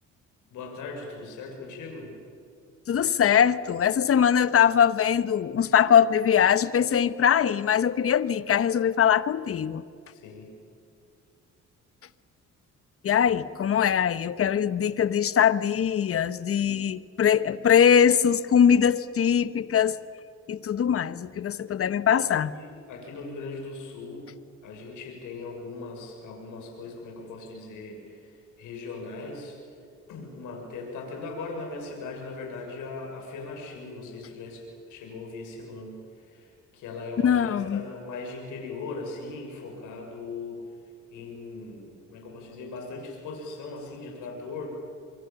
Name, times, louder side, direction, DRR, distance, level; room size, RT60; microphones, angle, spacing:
voice 1, 0.5-2.1 10.1-10.5 22.1-24.3 24.6-29.8 30.1-40.6 41.1-44.7, left 3 dB, 90° left, 1 dB, 6.6 m, -39 dB
voice 2, 2.9-9.8 13.0-20.0 20.5-22.5 37.2-37.8, left 8 dB, 50° left, 15 dB, 1.0 m, -22 dB
27.0 x 24.0 x 7.1 m, 2.5 s
cardioid pair, 90°, 30 cm